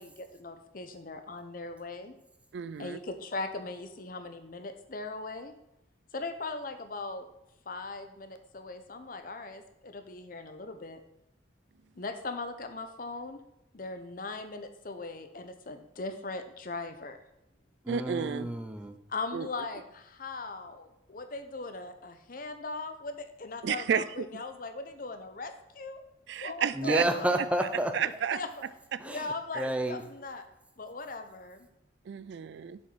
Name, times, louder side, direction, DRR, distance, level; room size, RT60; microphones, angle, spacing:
voice 1, 0.0-2.1 2.8-5.5 6.1-7.3 7.7-11.0 12.0-13.4 13.7-17.2 19.1-26.0 26.4-27.4 28.3-28.5 29.0-30.4 30.8-31.7, left 3 dB, 45° left, 0.7 m, -39 dB
voice 2, 2.5-3.0 17.9-18.5 19.3-19.5 23.6-24.4 26.3-27.0 27.9-28.4 28.9-29.0 29.5-29.7 32.1-32.8, right 7 dB, 70° right, 0.3 m, -31 dB
voice 3, 17.8-19.0 26.7-27.9 29.0-30.0, right 1 dB, 5° right, 0.6 m, -30 dB
7.2 x 5.3 x 5.4 m
head